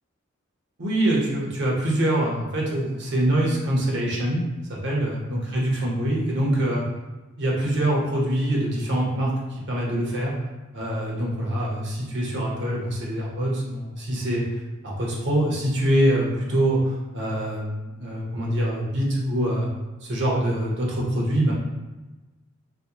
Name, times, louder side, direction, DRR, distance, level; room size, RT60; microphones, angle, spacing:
voice 1, 0.8-4.4 4.7-6.8 7.4-9.3 9.7-10.3 10.7-14.4 14.8-19.7 20.0-21.5, right 1 dB, 55° right, -3 dB, 0.9 m, -24 dB
4.1 x 2.1 x 2.9 m, 1.1 s
head